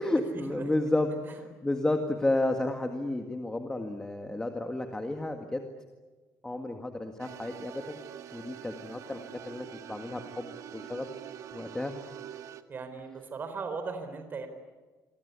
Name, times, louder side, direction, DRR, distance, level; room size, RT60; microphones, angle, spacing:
voice 1, 0.0-5.6 6.4-8.0 8.3-11.1 11.5-11.9, left 2 dB, 10° left, 4 dB, 1.9 m, -32 dB
sound 1, 7.2-12.6, right 10 dB, 60° right, 1.8 m, -45 dB
voice 2, 12.7-14.5, right 4 dB, 35° right, 7 dB, 4.1 m, -37 dB
27.5 x 24.5 x 8.3 m, 1.3 s
cardioid pair, 155°, 6 cm